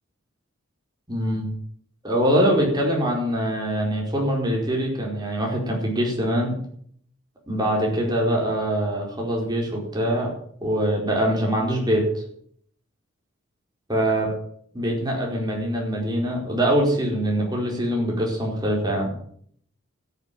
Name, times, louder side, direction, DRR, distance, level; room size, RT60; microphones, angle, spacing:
voice 1, 1.1-1.5 2.0-6.5 7.5-10.3 10.6-12.2 13.9-14.3 14.7-19.1, equal, 20° right, -1 dB, 4.7 m, -23 dB
13.0 x 8.3 x 8.9 m, 0.64 s
head